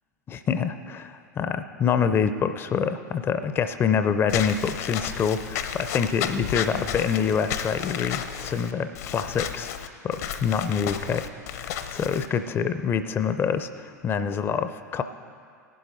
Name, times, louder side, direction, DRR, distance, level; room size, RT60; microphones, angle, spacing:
voice 1, 0.3-9.7 10.0-11.3 11.5-15.0, left 7 dB, 25° left, 10 dB, 0.5 m, -26 dB
Walk footsteps / Squeak, 4.3-12.3, left 9 dB, 55° left, 0.7 m, -33 dB
18.5 x 11.5 x 2.7 m, 2.2 s
figure-of-eight pair, 85°, 10 cm